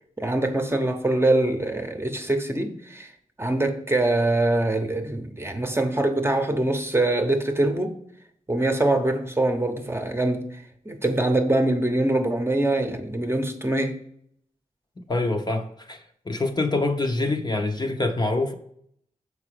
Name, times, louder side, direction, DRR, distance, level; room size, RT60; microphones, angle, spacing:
voice 1, 0.2-3.1 3.4-7.9 8.5-10.6 10.8-14.0, right 2 dB, 15° right, 0.8 m, -23 dB
voice 2, 15.1-18.5, left 2 dB, 30° left, 0.7 m, -25 dB
6.7 x 4.8 x 4.9 m
wide cardioid pair, 95°, 14 cm